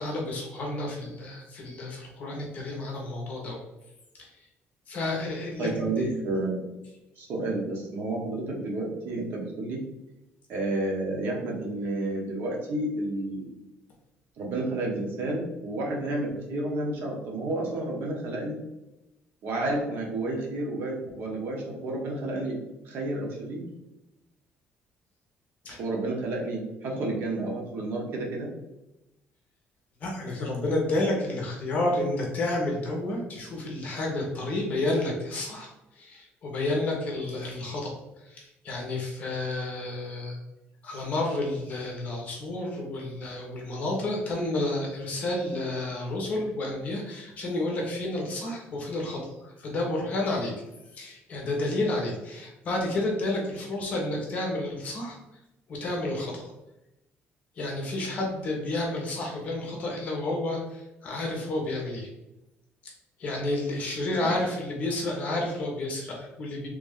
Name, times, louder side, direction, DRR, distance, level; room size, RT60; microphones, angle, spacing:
voice 1, 0.0-3.6 4.2-4.3 4.9-6.1 25.6-25.8 30.0-35.7 36.0-37.9 38.3-40.4 40.8-50.5 50.9-55.2 55.7-56.4 57.6-62.1 63.2-66.7, left 2 dB, 40° left, -1 dB, 0.9 m, -30 dB
voice 2, 5.6-6.6 7.2-9.8 10.5-13.5 14.4-18.6 19.4-22.6 22.8-23.7 25.7-28.5 64.2-64.3, right 2 dB, 55° right, -1 dB, 0.9 m, -31 dB
3.2 x 2.6 x 3.5 m, 0.93 s
cardioid pair, 170°, 4 cm